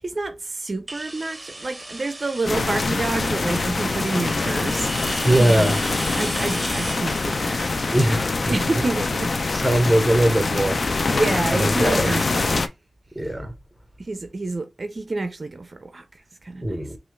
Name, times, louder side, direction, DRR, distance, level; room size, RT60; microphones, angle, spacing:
voice 1, 0.0-4.9 5.4-5.7 6.2-7.7 8.5-9.8 11.1-12.7 14.0-16.9, right 2 dB, 45° right, 0.4 m, -28 dB
sound 1, 0.9-10.5, right 2 dB, 25° right, 0.8 m, -36 dB
sound 2, 2.5-12.7, left 3 dB, 55° left, 0.4 m, -24 dB
voice 2, 5.2-5.8 7.9-8.5 9.5-10.8 11.5-12.1 13.1-13.5 16.6-17.0, right 1 dB, ahead, 1.1 m, -20 dB
5.4 x 2.4 x 3.1 m
wide cardioid pair, 80°, 0 cm